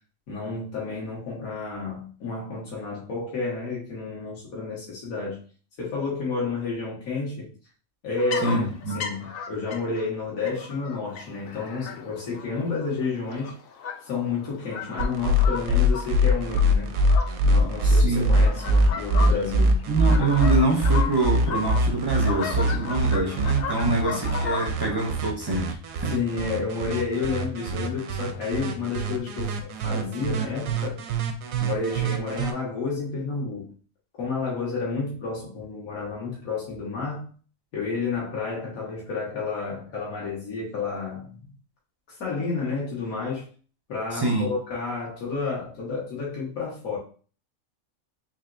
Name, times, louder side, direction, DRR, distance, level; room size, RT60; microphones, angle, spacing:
voice 1, 0.3-5.4 5.8-7.5 8.0-8.7 8.9-13.5 14.0-17.0 17.4-19.8 23.8-24.2 26.1-31.0 31.6-33.7 34.2-37.3 37.7-41.4 42.2-43.5 43.9-47.0, left 4 dB, 80° left, -5 dB, 1.6 m, -30 dB
sound 1, 8.2-10.0 10.4-25.1, left 6 dB, 60° left, 0.6 m, -36 dB
voice 2, 8.4-9.0 17.8-18.4 19.9-25.7 26.0-26.1 44.1-44.5, right 2 dB, 40° right, 0 dB, 0.3 m, -25 dB
sound 2, 15.0-32.5, equal, 80° right, 1.0 m, -23 dB
4.1 x 3.0 x 2.5 m, 0.39 s
omnidirectional pair, 1.5 m